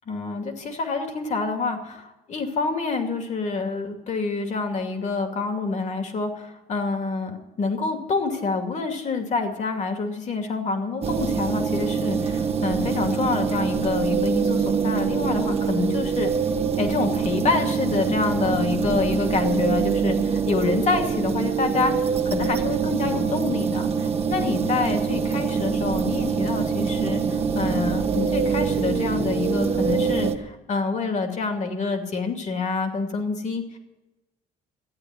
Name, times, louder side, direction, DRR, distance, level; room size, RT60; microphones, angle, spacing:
voice 1, 0.1-16.3 16.8-21.9 22.3-33.8, left 4 dB, 45° left, 5 dB, 2.6 m, -27 dB
sound 1, 11.0-30.4, right 6 dB, 35° right, 1.2 m, -24 dB
13.5 x 9.0 x 9.6 m, 1.0 s
cardioid pair, 110°, 17 cm